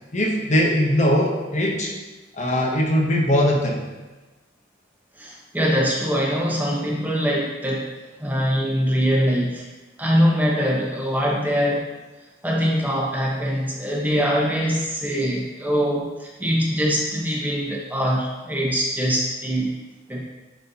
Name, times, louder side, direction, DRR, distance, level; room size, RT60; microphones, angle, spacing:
voice 1, 0.1-1.9 2.3-3.8, equal, 35° left, 0 dB, 0.8 m, -20 dB
voice 2, 5.2-7.9 8.2-9.6 10.0-11.8 12.4-19.7 20.1-20.2, equal, 10° right, -3 dB, 0.9 m, -23 dB
10.5 x 4.3 x 2.7 m, 1.2 s
head